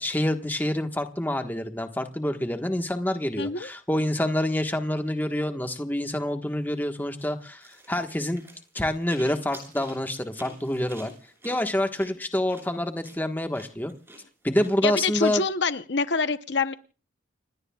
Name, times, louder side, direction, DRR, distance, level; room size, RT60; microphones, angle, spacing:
voice 1, 0.0-8.4 8.7-11.1 11.4-13.9 14.4-15.4, left 1 dB, 10° left, 6 dB, 1.3 m, -27 dB
voice 2, 3.4-3.7 14.8-16.7, left 4 dB, 60° left, 11 dB, 0.8 m, -26 dB
sound 1, 7.6-14.7, right 1 dB, 10° right, 6.9 m, -48 dB
30.0 x 17.5 x 2.3 m, 0.37 s
head